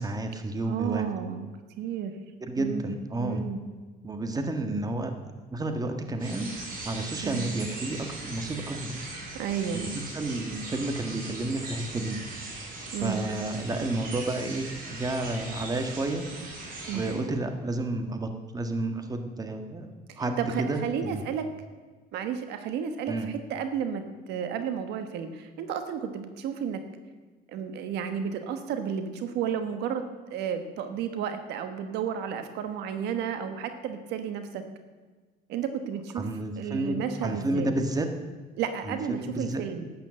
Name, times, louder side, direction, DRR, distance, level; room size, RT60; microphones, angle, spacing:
voice 1, 0.0-1.1 2.4-3.4 4.0-5.1 5.5-6.5 6.8-9.0 9.7-12.2 12.9-16.2 16.9-19.9 20.2-21.2 23.1-23.3 36.1-37.0 37.2-38.1 38.9-39.6, right 2 dB, 20° right, 6 dB, 1.6 m, -31 dB
voice 2, 0.6-1.5 1.8-2.1 2.6-3.6 7.2-7.4 9.3-9.8 12.9-13.2 16.9-17.1 20.1-21.5 22.1-26.8 27.5-30.0 30.3-34.6 35.5-36.2 36.6-37.7 38.6-39.9, right 8 dB, 85° right, 8 dB, 1.3 m, -32 dB
sound 1, 6.2-17.2, right 2 dB, 60° right, 4.1 m, -39 dB
12.5 x 9.1 x 7.6 m, 1.4 s
cardioid pair, 110°, 17 cm